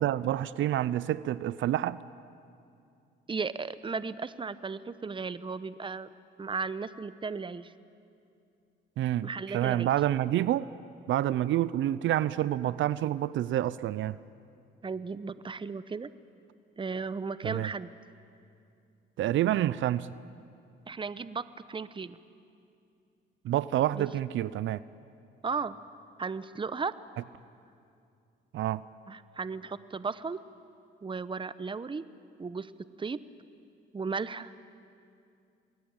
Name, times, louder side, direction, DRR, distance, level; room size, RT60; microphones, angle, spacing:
voice 1, 0.0-2.0 9.0-10.7 11.1-14.2 17.4-17.7 19.2-20.1 23.4-24.8 28.5-28.8, right 13 dB, 75° right, 18 dB, 0.6 m, -28 dB
voice 2, 3.3-6.1 6.4-7.7 9.2-9.9 14.8-16.1 16.8-17.9 20.9-22.2 23.9-24.1 25.4-25.8 26.2-26.9 29.1-30.4 31.0-32.0 32.4-32.7 33.0-33.2 33.9-34.5, right 4 dB, 25° right, 15 dB, 0.9 m, -35 dB
28.0 x 21.0 x 8.9 m, 2.5 s
cardioid pair, 90°, 20 cm